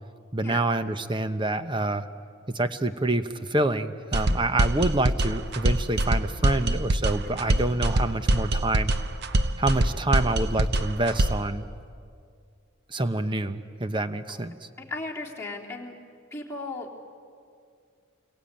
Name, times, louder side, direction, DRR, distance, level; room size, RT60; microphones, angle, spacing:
voice 1, 0.3-2.1 2.5-8.9 9.6-11.7 12.9-14.5, right 2 dB, 25° right, 10 dB, 1.0 m, -27 dB
sound 1, 4.1-11.5, right 1 dB, 55° right, 0.9 m, -24 dB
voice 2, 14.8-15.9 16.3-17.1, left 3 dB, 15° left, -4 dB, 3.4 m, -36 dB
29.0 x 23.0 x 8.9 m, 2.3 s
head